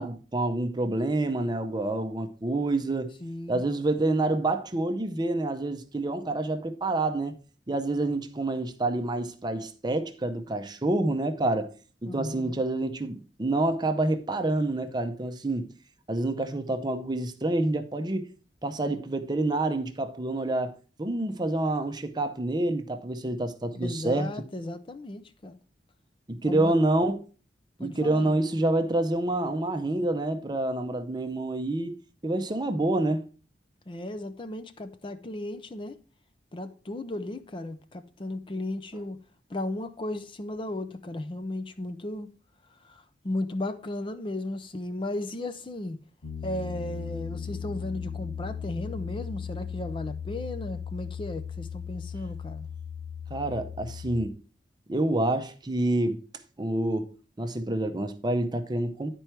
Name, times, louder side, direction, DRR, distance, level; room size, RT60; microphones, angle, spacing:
voice 1, 0.0-3.2 3.5-7.3 7.7-11.7 12.0-15.7 16.1-18.3 18.6-24.3 26.3-27.2 27.8-32.0 32.2-33.3 53.3-54.4 54.9-56.2 56.6-59.1, right 2 dB, 25° right, 0.6 m, -27 dB
voice 2, 3.2-3.6 12.0-12.6 23.7-25.6 26.4-26.7 27.8-28.4 33.9-36.0 36.5-39.2 39.5-42.3 42.8-46.0 46.4-52.7, left 1 dB, 30° left, 0.5 m, -35 dB
Piano, 46.2-54.3, left 7 dB, 75° left, 0.9 m, -37 dB
10.5 x 4.5 x 4.5 m
head